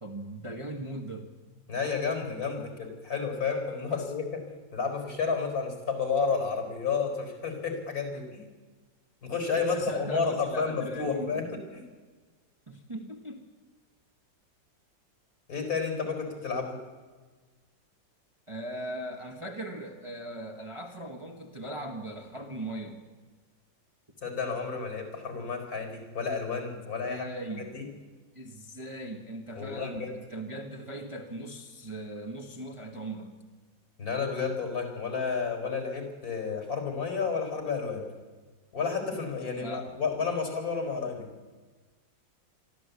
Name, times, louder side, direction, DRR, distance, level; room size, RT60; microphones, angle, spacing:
voice 1, 0.0-1.3 2.6-2.7 3.9-4.0 8.1-8.2 9.6-11.5 12.7-13.4 18.5-23.0 27.1-27.7 28.3-33.3 39.6-39.9, right 1 dB, 15° right, 1 dB, 1.6 m, -39 dB
voice 2, 1.7-4.4 4.7-8.4 9.2-11.9 15.5-16.8 24.2-27.8 29.6-30.2 34.0-38.0 38.7-41.3, left 5 dB, 50° left, 4 dB, 5.0 m, -31 dB
24.0 x 13.5 x 8.4 m, 1.4 s
omnidirectional pair, 2.0 m